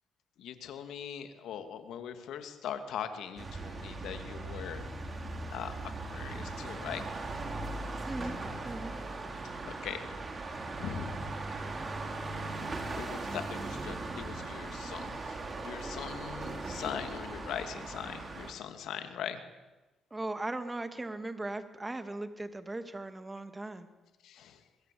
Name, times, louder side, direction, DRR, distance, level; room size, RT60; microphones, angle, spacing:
voice 1, 0.4-4.9 5.5-5.7 6.1-7.1 9.6-10.2 10.8-11.3 12.8-15.4 15.6-19.4 24.2-24.6, left 9 dB, 80° left, 8 dB, 2.7 m, -41 dB
sound 1, 3.4-18.5, right 2 dB, 35° right, 4.6 m, -39 dB
voice 2, 8.1-8.4 8.6-8.9 20.1-23.9, right 2 dB, 15° right, 9 dB, 2.4 m, -38 dB
25.0 x 21.5 x 8.7 m, 1.1 s
cardioid pair, 90°, 0 cm